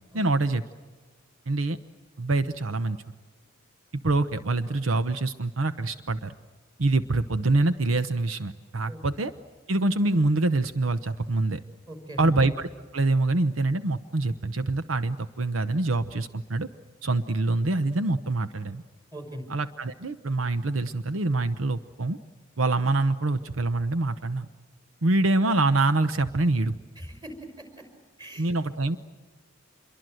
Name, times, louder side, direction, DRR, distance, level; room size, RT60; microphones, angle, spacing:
voice 1, 0.1-0.6 1.5-1.8 2.2-3.0 4.0-6.3 6.8-9.3 9.7-11.6 12.2-16.7 17.0-18.8 19.5-22.2 22.6-24.5 25.0-26.7 28.4-29.0, right 2 dB, 80° right, 11 dB, 0.9 m, -25 dB
voice 2, 11.9-12.3 19.1-19.5 27.0-27.6 28.2-28.5, equal, 20° right, 6 dB, 5.8 m, -40 dB
27.0 x 23.0 x 7.8 m, 1.3 s
head